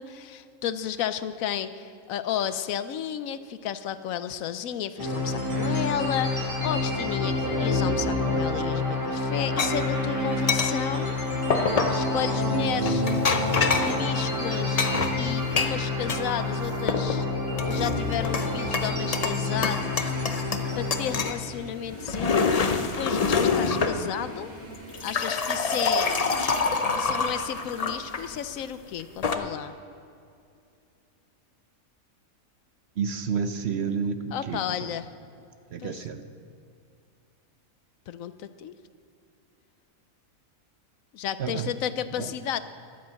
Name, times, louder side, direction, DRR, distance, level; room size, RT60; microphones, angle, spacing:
voice 1, 0.0-11.1 11.9-13.0 13.7-14.8 15.2-17.3 17.7-20.1 20.7-24.5 25.0-26.2 26.9-29.7 34.3-35.1 35.8-36.1 38.1-38.7 41.1-42.6, left 9 dB, 75° left, 13 dB, 1.0 m, -32 dB
sound 1, 5.0-21.2, left 2 dB, 15° right, 2.9 m, -28 dB
sound 2, 9.6-9.7 10.5-10.7 11.5-12.0 12.8-14.0 14.8-16.2 16.6-17.2 17.6-18.5 18.7-19.4 19.6-20.7 20.9-21.4 21.9-24.0 24.7-28.2 29.0-29.3, left 4 dB, 40° left, 0.6 m, -26 dB
sound 3, 17.8-28.4, equal, 35° right, 4.4 m, -44 dB
voice 2, 33.0-34.9 35.7-36.2 41.4-41.7 42.2-42.3, right 6 dB, 55° right, 9 dB, 0.8 m, -30 dB
12.5 x 9.4 x 7.6 m, 2.4 s
omnidirectional pair, 1.5 m